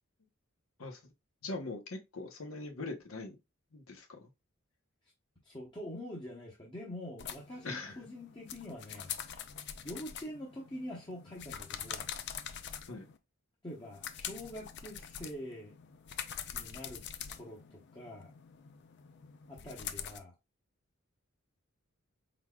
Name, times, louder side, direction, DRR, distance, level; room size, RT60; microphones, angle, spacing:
voice 1, 1.4-3.4 3.7-4.3 7.6-8.0 12.9-13.1, left 2 dB, 80° left, 1.0 m, -41 dB
voice 2, 5.4-9.2 9.8-12.1 13.6-15.7 16.5-17.0 17.3-18.3 19.5-20.3, equal, 20° left, 0.9 m, -45 dB
sound 1, 7.2-13.2 13.7-20.2, left 9 dB, 55° left, 0.5 m, -44 dB
4.6 x 4.0 x 2.3 m
head